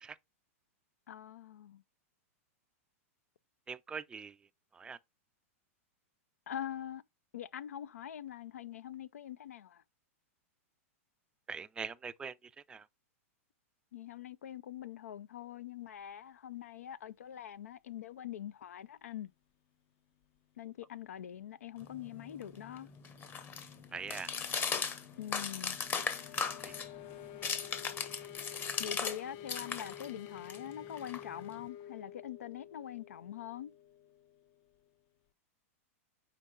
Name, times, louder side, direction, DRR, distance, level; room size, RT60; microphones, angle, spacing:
voice 1, 1.1-1.8 6.5-7.0 7.3-9.8 13.9-19.3 20.6-22.9 25.2-25.8 28.8-33.7, left 10 dB, 85° left, 0.4 m, -44 dB
voice 2, 3.7-4.3 4.8-5.0 11.5-12.3 12.7-12.8 23.9-24.3 26.6-26.7, right 5 dB, 10° right, 0.3 m, -42 dB
sound 1, 21.8-29.2 29.5-31.7, left 6 dB, 25° left, 1.0 m, -38 dB
sound 2, 22.3-34.9, left 11 dB, 45° left, 0.7 m, -51 dB
5.1 x 4.6 x 4.3 m
hypercardioid pair, 120°, 8 cm